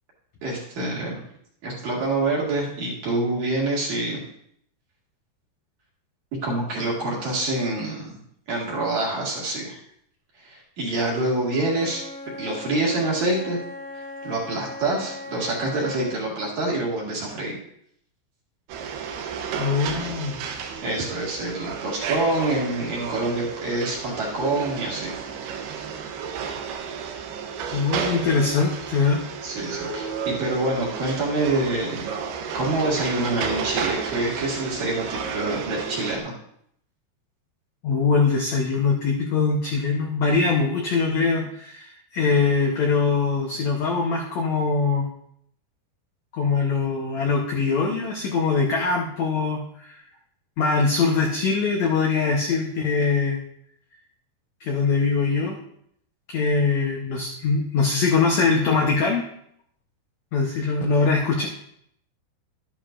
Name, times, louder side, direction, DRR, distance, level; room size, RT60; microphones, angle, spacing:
voice 1, 0.4-1.2 1.6-4.2 6.4-8.2 8.5-9.8 10.4-12.0 12.4-13.6 14.0-17.6 20.8-25.2 29.4-32.1 32.5-36.3, right 2 dB, 55° right, -4 dB, 3.0 m, -26 dB
Wind instrument woodwind instrument, 11.4-16.2, left 2 dB, 30° right, 2.1 m, -38 dB
sound 1, 18.7-36.2, right 6 dB, 80° right, 2.9 m, -32 dB
voice 2, 19.6-20.4 27.7-29.2 37.8-45.1 46.3-50.0 50.6-53.4 54.6-55.6 56.3-59.3 60.3-61.5, left 4 dB, 75° left, 0 dB, 1.6 m, -22 dB
12.0 x 11.5 x 2.5 m, 0.69 s
omnidirectional pair, 4.6 m